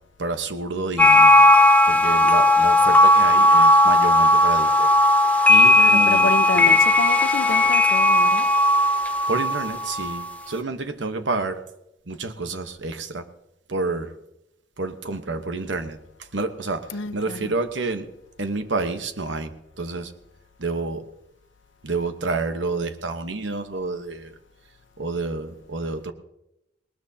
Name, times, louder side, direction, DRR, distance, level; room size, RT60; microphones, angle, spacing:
voice 1, 0.2-1.5 1.8-4.9 5.5-6.8 9.3-11.6 12.1-13.3 13.7-14.1 14.8-18.1 18.4-20.1 20.6-21.1 21.8-24.3 25.0-26.1, right 3 dB, 70° right, 8 dB, 1.1 m, -29 dB
sound 1, 1.0-10.3, left 1 dB, 10° left, 0.6 m, -16 dB
voice 2, 5.7-8.5 16.9-17.5, left 3 dB, 90° left, 9 dB, 0.9 m, -29 dB
20.0 x 19.0 x 2.8 m, 0.88 s
head